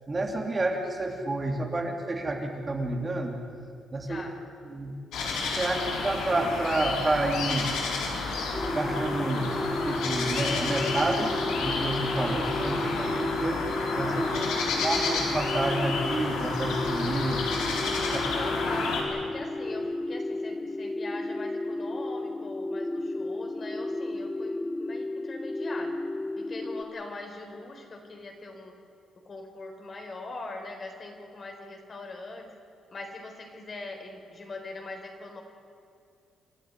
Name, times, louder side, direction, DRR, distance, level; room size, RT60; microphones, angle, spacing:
voice 1, 0.1-3.4 3.9-4.2 4.7-4.9 5.6-7.7 8.7-9.5 9.8-13.7 14.0-14.4 14.8-17.5, right 2 dB, 25° right, 2 dB, 2.9 m, -29 dB
voice 2, 4.1-4.4 14.3-14.5 18.0-26.0 26.4-28.7 29.3-32.5 32.9-35.4, left 2 dB, 40° left, 3 dB, 4.0 m, -41 dB
sound 1, 5.1-19.0, left 4 dB, 85° left, 4.0 m, -30 dB
sound 2, 8.5-26.8, left 2 dB, 10° left, 1.1 m, -33 dB
29.0 x 12.0 x 9.8 m, 2.5 s
cardioid pair, 90°, 0 cm